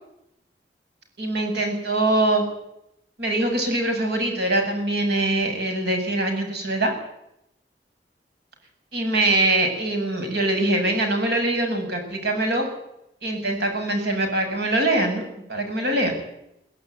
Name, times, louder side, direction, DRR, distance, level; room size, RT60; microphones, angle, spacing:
voice 1, 1.2-2.4 3.2-6.9 8.9-12.6 13.2-15.2 15.5-16.1, right 2 dB, 70° right, 4 dB, 7.8 m, -23 dB
23.5 x 16.0 x 9.5 m, 0.81 s
head